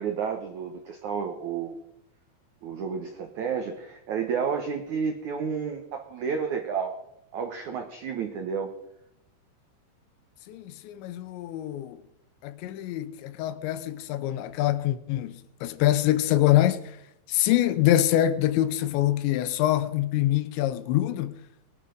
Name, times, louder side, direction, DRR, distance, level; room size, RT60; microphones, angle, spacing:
voice 1, 0.0-1.8 2.6-7.0 7.3-8.7, right 6 dB, 70° right, 1.8 m, -31 dB
voice 2, 10.5-12.0 12.4-16.8 17.3-21.4, left 13 dB, 80° left, 3.1 m, -25 dB
23.0 x 10.0 x 5.3 m
omnidirectional pair, 5.3 m